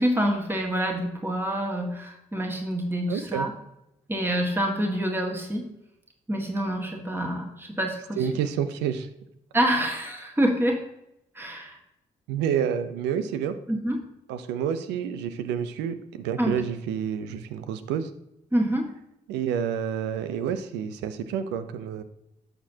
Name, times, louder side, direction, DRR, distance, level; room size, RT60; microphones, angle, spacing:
voice 1, 0.0-3.5 4.1-5.7 6.3-8.2 9.5-10.9 11.4-11.8 13.7-14.0 16.4-16.6 18.5-18.9, right 1 dB, 15° right, 1 dB, 1.8 m, -26 dB
voice 2, 3.1-3.5 8.2-9.1 12.3-13.6 14.3-18.1 19.3-22.0, right 8 dB, 85° right, 11 dB, 0.7 m, -29 dB
11.0 x 6.7 x 2.8 m, 0.83 s
supercardioid pair, 50°, 17 cm